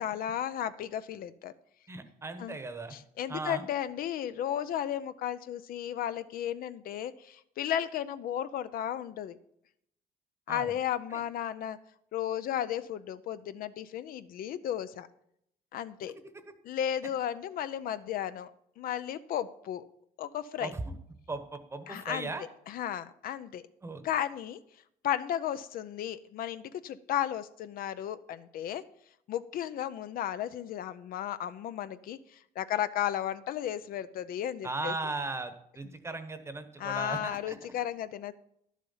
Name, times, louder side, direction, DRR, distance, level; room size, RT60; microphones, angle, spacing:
voice 1, 0.0-1.5 2.4-2.6 2.9-9.4 10.5-11.8 12.1-15.1 15.7-16.1 16.6-18.5 18.8-19.8 20.2-20.7 21.9-22.3 22.7-23.6 24.0-24.6 25.0-28.8 29.3-34.9 36.8-38.3, left 10 dB, 60° left, 13 dB, 0.5 m, -34 dB
voice 2, 1.9-3.0 3.3-3.6 10.5-10.7 11.1-11.2 16.1-16.4 20.6-20.8 21.3-22.5 23.8-24.0 34.6-37.6, right 3 dB, 15° right, 9 dB, 1.0 m, -37 dB
11.5 x 7.3 x 5.5 m, 0.73 s
cardioid pair, 140°, 17 cm